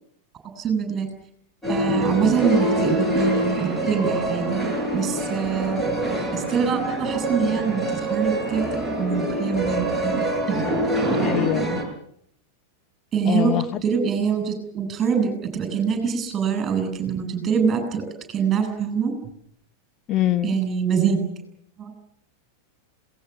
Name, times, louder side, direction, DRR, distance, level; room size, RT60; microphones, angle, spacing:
voice 1, 0.6-1.1 1.7-5.8 6.3-8.6 9.0-10.7 11.5-11.6 13.1-13.6 13.8-18.0 18.3-19.2 20.4-21.3 21.8-21.9, right 6 dB, 25° right, 6 dB, 7.9 m, -24 dB
sound 1, 1.6-11.8, right 1 dB, 5° left, 7.4 m, -25 dB
voice 2, 11.2-11.8 13.2-13.8 20.1-20.6, left 13 dB, 30° left, 10 dB, 1.3 m, -24 dB
27.5 x 19.5 x 7.2 m, 0.68 s
figure-of-eight pair, 90°, 0 cm